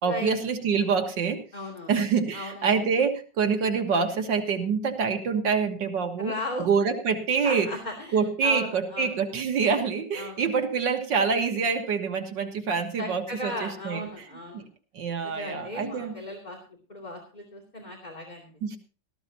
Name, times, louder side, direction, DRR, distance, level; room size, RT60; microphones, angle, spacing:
voice 1, 0.0-1.4 1.9-6.3 6.6-7.7 8.1-14.0 14.9-16.1 18.6-18.8, right 5 dB, 85° right, 5 dB, 2.2 m, -26 dB
voice 2, 1.5-1.9 2.3-2.8 6.2-6.7 7.4-9.1 10.1-10.6 13.0-14.7 15.2-18.5, left 1 dB, 25° left, -1 dB, 2.8 m, -37 dB
18.0 x 14.0 x 2.8 m, 0.35 s
omnidirectional pair, 1.9 m